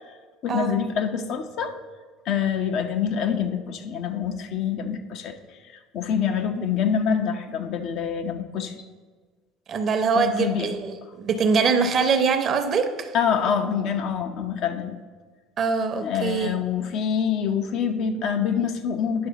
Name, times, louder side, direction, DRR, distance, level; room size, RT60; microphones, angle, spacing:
voice 1, 0.4-1.8 2.3-8.7 10.2-10.7 13.1-15.0 16.0-19.3, left 7 dB, 55° left, 6 dB, 0.7 m, -26 dB
voice 2, 9.7-13.1 15.6-16.6, right 5 dB, 45° right, 8 dB, 0.8 m, -23 dB
9.6 x 6.2 x 3.9 m, 1.4 s
figure-of-eight pair, 65°, 0 cm